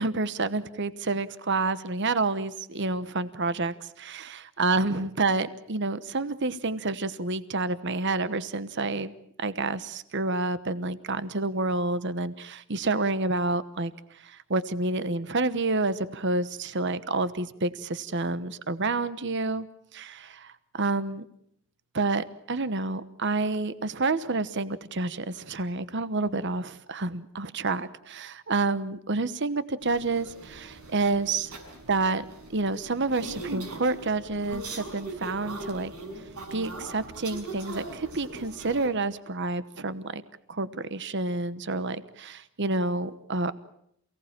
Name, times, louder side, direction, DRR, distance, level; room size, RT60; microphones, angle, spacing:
voice 1, 0.0-9.1 9.4-13.9 14.2-19.7 19.9-21.2 21.9-31.5 31.9-35.9 36.5-40.2 40.5-43.6, right 3 dB, 55° right, 14 dB, 1.1 m, -29 dB
sound 1, 29.8-38.9, right 2 dB, 90° right, 6.5 m, -41 dB
28.0 x 18.0 x 8.8 m, 0.72 s
head